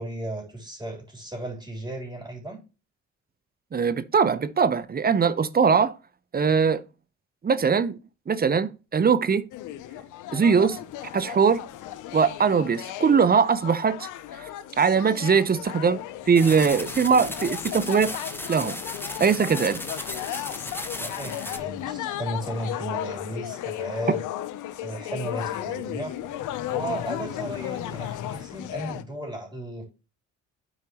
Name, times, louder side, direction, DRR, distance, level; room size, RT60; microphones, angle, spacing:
voice 1, 0.0-2.6 20.9-24.3 24.8-26.1 26.7-29.8, right 1 dB, 10° right, 3.3 m, -35 dB
voice 2, 3.7-5.9 6.3-6.8 7.4-8.0 8.3-9.5 10.3-10.8 11.1-11.7 12.1-14.1 14.3-14.5 14.8-18.2 18.5-18.8 19.2-19.8, right 6 dB, 30° right, 0.7 m, -21 dB
sound 1, 9.5-29.0, left 12 dB, 85° left, 0.7 m, -35 dB
sound 2, 16.4-21.6, left 1 dB, 5° left, 1.0 m, -36 dB
11.5 x 4.7 x 3.0 m
cardioid pair, 90°, 30 cm